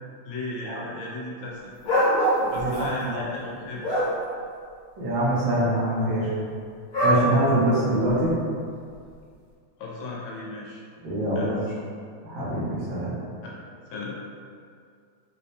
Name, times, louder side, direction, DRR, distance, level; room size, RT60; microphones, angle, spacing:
voice 1, 0.2-1.7 2.5-3.8 9.8-10.8 11.3-11.7 13.4-13.5 13.9-14.2, left 2 dB, 75° left, -4 dB, 1.3 m, -35 dB
sound 1, 1.8-2.8 3.5-4.1 6.9-7.2 8.1-8.2, equal, 50° left, 1.3 m, -22 dB
voice 2, 2.5-3.3 5.0-6.3 7.0-8.4 11.0-11.5 12.2-13.1, right 1 dB, 70° right, -7 dB, 1.6 m, -24 dB
4.8 x 2.2 x 2.7 m, 2.2 s
omnidirectional pair, 2.3 m